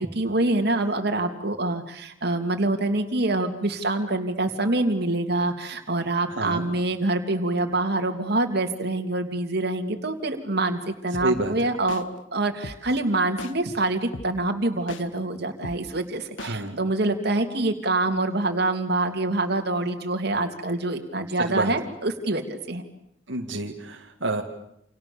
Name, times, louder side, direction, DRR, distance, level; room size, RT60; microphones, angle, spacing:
voice 1, 0.0-12.1 12.3-22.8, right 2 dB, 55° right, 4 dB, 2.9 m, -25 dB
voice 2, 6.3-6.6 11.2-11.7 16.4-16.8 21.4-21.7 23.3-24.4, right 2 dB, 75° right, 1 dB, 2.3 m, -28 dB
sound 1, 11.1-11.3 11.9-12.0 12.6-12.8 13.4-13.5 14.1-14.3 14.9-15.0 15.6-15.8 16.4-16.5, left 2 dB, 80° left, 1.8 m, -36 dB
29.5 x 28.0 x 7.1 m, 0.74 s
head